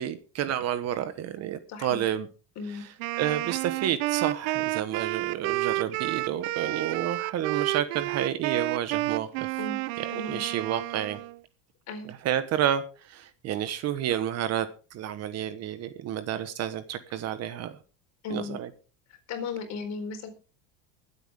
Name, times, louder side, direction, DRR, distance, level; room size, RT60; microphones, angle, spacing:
voice 1, 0.0-2.3 3.2-9.5 10.1-11.2 12.2-17.7 18.3-18.7, right 10 dB, 40° right, 1.3 m, -30 dB
voice 2, 1.7-2.0 2.6-2.8 9.6-9.8 10.1-10.4 11.9-12.1 18.2-18.6 19.3-20.3, left 4 dB, 45° left, 4.3 m, -35 dB
Wind instrument woodwind instrument, 3.0-11.4, right 19 dB, 70° right, 0.8 m, -30 dB
22.5 x 8.3 x 3.6 m
supercardioid pair, 140°, 38 cm